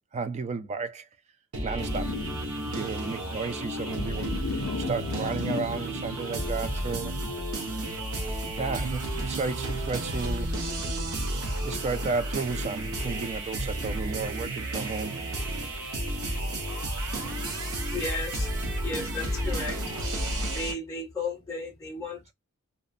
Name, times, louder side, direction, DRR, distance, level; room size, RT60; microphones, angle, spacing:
voice 1, 0.1-1.1 1.6-2.1 2.7-7.2 8.6-10.6 11.6-15.2 17.1-17.4, right 4 dB, 30° right, 0.3 m, -33 dB
sound 1, 1.5-20.7, right 1 dB, 90° right, 0.7 m, -32 dB
sound 2, 1.8-7.0, left 6 dB, 60° left, 0.3 m, -37 dB
voice 2, 17.9-18.5 18.8-19.8 20.5-22.3, left 3 dB, 15° left, 0.6 m, -34 dB
2.6 x 2.1 x 2.4 m
head